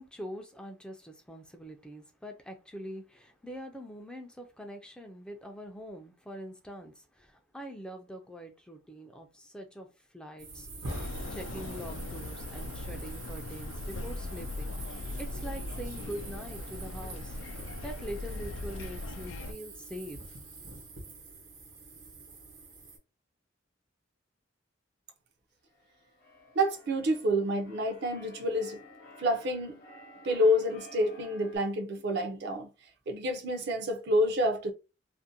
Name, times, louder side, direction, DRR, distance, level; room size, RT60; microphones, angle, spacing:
voice 1, 0.0-17.4 17.8-20.4, equal, 5° left, 0.3 m, -44 dB
sound 1, 10.4-23.0, right 3 dB, 85° right, 1.0 m, -46 dB
sound 2, 10.9-19.5, left 2 dB, 80° left, 0.4 m, -39 dB
Keyboard (musical), 25.7-31.6, left 1 dB, 55° left, 0.8 m, -52 dB
voice 2, 26.6-28.8 29.2-29.8 30.2-32.7 33.1-34.7, equal, 60° right, 0.5 m, -28 dB
2.5 x 2.1 x 2.6 m
head